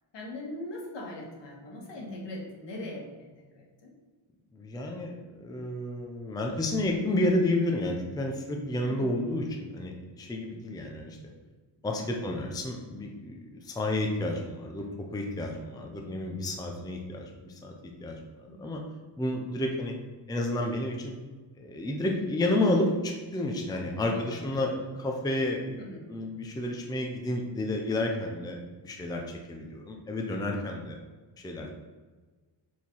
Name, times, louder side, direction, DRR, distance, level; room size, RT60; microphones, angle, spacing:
voice 1, 0.1-4.0 8.8-9.3 12.0-12.2 15.7-16.1 18.5-18.9 23.7-24.8 25.8-26.1 30.5-30.8, left 1 dB, 70° left, -2 dB, 1.8 m, -42 dB
voice 2, 4.5-11.2 11.8-14.9 15.1-17.7 18.0-18.2 18.6-18.8 19.2-19.9 20.3-21.1 21.6-25.8 26.1-31.0 31.4-31.7, left 1 dB, 10° left, 1 dB, 0.5 m, -31 dB
4.7 x 4.5 x 5.4 m, 1.3 s
wide cardioid pair, 160°, 44 cm